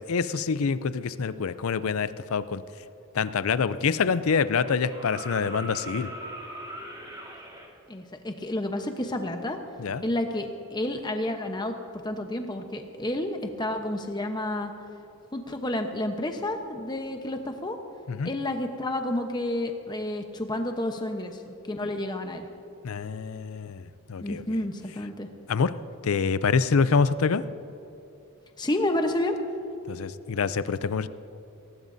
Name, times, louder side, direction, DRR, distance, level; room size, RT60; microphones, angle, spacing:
voice 1, 0.0-2.6 3.1-6.1 9.8-10.0 18.1-18.3 22.8-24.4 25.5-25.7 26.0-27.4 29.9-31.1, left 5 dB, 70° left, 15 dB, 0.5 m, -26 dB
sound 1, 4.5-7.7 9.5-9.6, right 1 dB, 20° right, 1.9 m, -40 dB
voice 2, 7.9-9.6 10.0-11.7 12.0-14.7 15.3-17.8 18.2-22.4 24.2-25.3 28.6-29.4, left 1 dB, 20° left, 5 dB, 0.9 m, -30 dB
19.0 x 18.0 x 2.7 m, 2.8 s
head